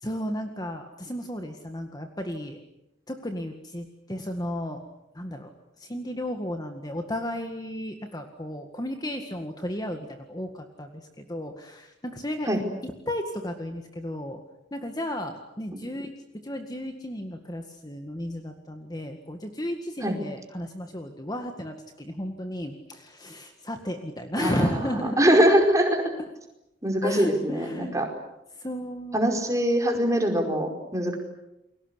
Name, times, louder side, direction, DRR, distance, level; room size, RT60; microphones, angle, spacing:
voice 1, 0.0-2.6 3.1-4.8 5.2-5.5 5.8-10.9 11.2-12.5 12.8-14.4 14.7-16.1 16.4-25.2 27.0-27.9 28.6-29.3, left 1 dB, 20° left, 5 dB, 1.9 m, -33 dB
voice 2, 24.4-26.0 26.8-28.1 29.1-31.2, equal, 15° right, 3 dB, 4.9 m, -23 dB
30.0 x 22.0 x 8.2 m, 0.88 s
head